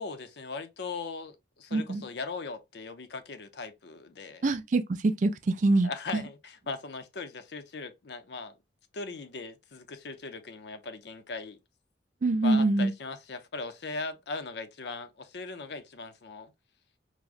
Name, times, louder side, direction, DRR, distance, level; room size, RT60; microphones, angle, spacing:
voice 1, 0.0-4.5 5.8-8.5 8.9-11.6 12.4-16.5, left 4 dB, 60° left, 0.5 m, -39 dB
voice 2, 1.7-2.0 4.4-5.9 12.2-12.9, right 2 dB, 40° right, 0.3 m, -24 dB
4.6 x 2.1 x 2.4 m
head